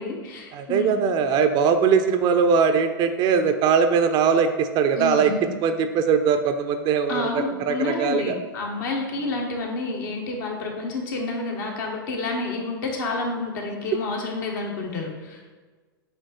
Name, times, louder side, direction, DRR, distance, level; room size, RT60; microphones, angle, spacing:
voice 1, 0.0-1.0 4.9-5.4 7.1-15.4, left 3 dB, 60° left, 0 dB, 1.4 m, -29 dB
voice 2, 0.5-5.3 5.6-8.4, right 6 dB, 40° right, 8 dB, 0.6 m, -21 dB
8.0 x 3.0 x 4.3 m, 1.4 s
hypercardioid pair, 100°, 12 cm